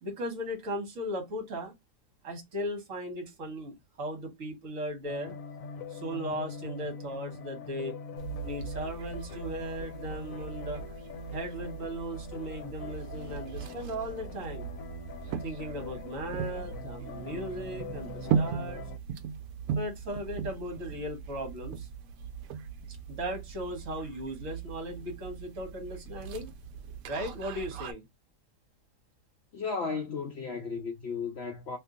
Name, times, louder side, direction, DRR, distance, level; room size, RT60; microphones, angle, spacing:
voice 1, 0.0-1.7 2.2-5.3 5.9-7.9 8.4-10.8 11.3-14.7 15.4-18.8 19.7-21.9 23.1-26.5 27.1-28.0, equal, 55° right, 1.4 m, -37 dB
sound 1, 5.0-19.0, left 5 dB, 60° left, 1.0 m, -43 dB
sound 2, 8.2-27.9, right 7 dB, 70° right, 0.9 m, -38 dB
voice 2, 29.5-31.8, left 5 dB, 80° left, 0.5 m, -34 dB
2.8 x 2.6 x 3.6 m
omnidirectional pair, 1.8 m